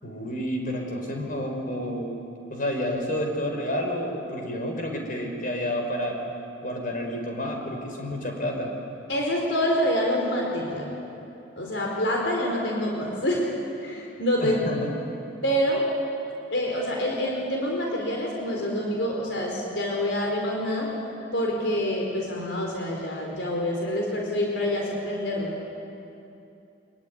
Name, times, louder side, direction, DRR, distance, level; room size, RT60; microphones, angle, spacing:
voice 1, 0.0-2.1 2.5-6.2 6.6-8.7 14.4-14.9, left 1 dB, 50° left, 2 dB, 5.1 m, -30 dB
voice 2, 9.1-10.9 11.6-13.5 13.8-14.8 15.4-15.8 16.5-20.9 21.3-25.6, equal, 75° left, -1 dB, 4.4 m, -26 dB
24.5 x 23.5 x 9.6 m, 2.8 s
head